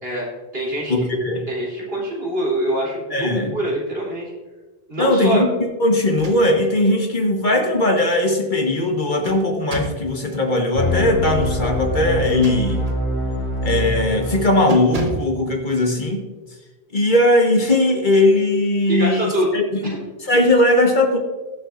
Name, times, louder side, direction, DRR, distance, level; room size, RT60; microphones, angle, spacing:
voice 1, 0.0-1.1 1.5-4.3 4.9-5.4 18.9-19.5 19.8-20.0, right 1 dB, 70° right, -4 dB, 3.6 m, -25 dB
voice 2, 0.9-1.5 3.1-3.5 5.0-12.8 13.6-16.2 16.9-21.2, left 1 dB, 50° left, 2 dB, 1.4 m, -19 dB
sound 1, 6.0-6.8 7.2-7.3 8.8-10.1 12.1-13.1 13.5-13.8 14.1-14.3 14.7-15.4, right 3 dB, 40° right, 1.1 m, -32 dB
sound 2, 10.7-14.7, left 1 dB, 70° left, 3.2 m, -24 dB
21.0 x 7.2 x 2.5 m, 1.2 s
omnidirectional pair, 1.1 m